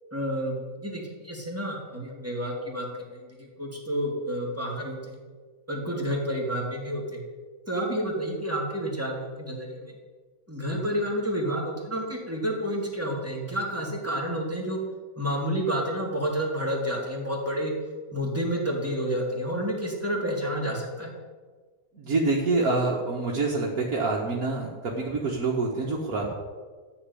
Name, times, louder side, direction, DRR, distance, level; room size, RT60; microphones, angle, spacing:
voice 1, 0.1-5.2 5.7-7.2 7.7-9.9 10.5-14.8 15.2-17.7 18.1-21.1, equal, 10° right, -2 dB, 3.3 m, -30 dB
voice 2, 21.9-26.3, right 3 dB, 75° right, -3 dB, 2.1 m, -26 dB
14.0 x 7.5 x 9.9 m, 1.4 s
omnidirectional pair, 1.5 m